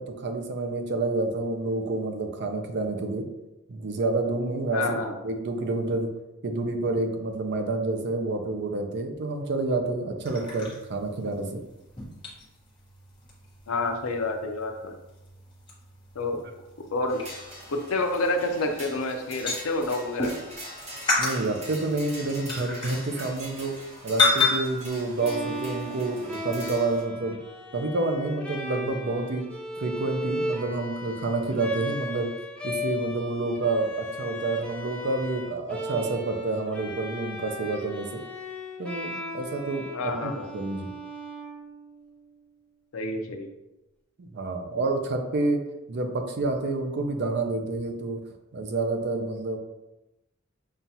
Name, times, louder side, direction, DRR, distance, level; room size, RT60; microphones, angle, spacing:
voice 1, 0.0-3.3 3.7-6.1 6.4-11.6 21.2-27.4 27.7-29.4 29.8-32.3 32.6-38.2 38.8-40.9 44.2-45.6 45.9-48.2 48.5-49.6, right 2 dB, 55° right, 5 dB, 0.5 m, -28 dB
voice 2, 4.7-5.1 13.7-14.9 16.2-16.4 16.9-17.2 17.7-20.3 39.9-40.5 42.9-43.5, left 2 dB, 85° left, 5 dB, 0.5 m, -28 dB
sound 1, 10.3-20.6 21.1-23.9 24.2-24.9, left 4 dB, 25° left, 1.0 m, -31 dB
sound 2, 17.1-27.0, equal, 30° right, 0.9 m, -43 dB
Bowed string instrument, 25.2-42.1, left 1 dB, 5° left, 0.5 m, -36 dB
5.5 x 2.4 x 2.7 m, 0.95 s
head